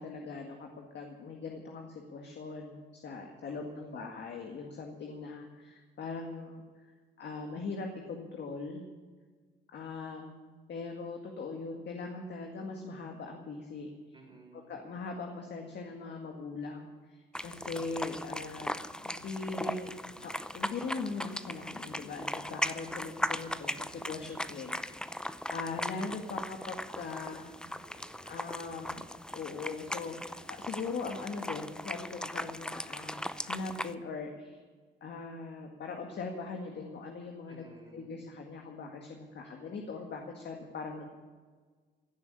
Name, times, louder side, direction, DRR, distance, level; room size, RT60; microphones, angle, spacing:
voice 1, 0.0-8.8 9.7-10.4 10.7-13.9 14.7-18.7 19.0-19.9 20.2-27.5 28.2-34.6 35.0-37.7 37.9-41.1, left 4 dB, 60° left, 2 dB, 1.9 m, -41 dB
voice 2, 3.5-4.0 14.1-14.8 17.6-18.1 27.8-28.5 37.5-38.1, right 2 dB, 25° right, 1 dB, 4.1 m, -56 dB
sound 1, 17.3-33.9, left 1 dB, 5° left, 0.6 m, -38 dB
16.5 x 7.4 x 9.9 m, 1.5 s
cardioid pair, 90°, 20 cm